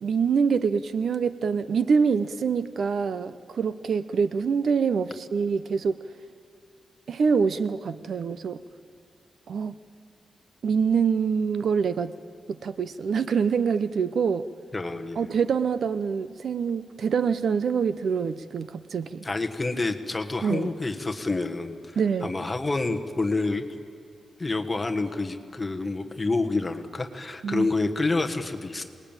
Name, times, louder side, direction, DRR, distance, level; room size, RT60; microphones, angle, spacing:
voice 1, 0.0-6.0 7.1-8.6 9.5-9.8 10.6-12.1 12.5-14.5 15.2-19.3 20.4-20.7 22.0-22.3 27.4-27.7, right 6 dB, 60° right, 14 dB, 0.7 m, -25 dB
voice 2, 14.7-15.2 19.2-23.6 24.4-28.8, left 3 dB, 15° left, 5 dB, 1.4 m, -28 dB
27.5 x 20.0 x 9.0 m, 2.6 s
wide cardioid pair, 175°, 0 cm